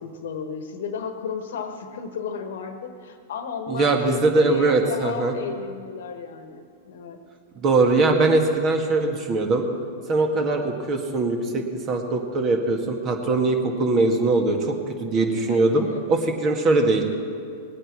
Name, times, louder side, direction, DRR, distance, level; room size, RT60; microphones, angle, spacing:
voice 1, 0.0-7.2 15.4-16.0, left 6 dB, 70° left, 8 dB, 1.3 m, -34 dB
voice 2, 3.7-5.3 7.6-9.6 10.1-17.0, right 3 dB, 35° right, 3 dB, 1.9 m, -21 dB
19.0 x 8.9 x 6.0 m, 2.3 s
hypercardioid pair, 105°, 0 cm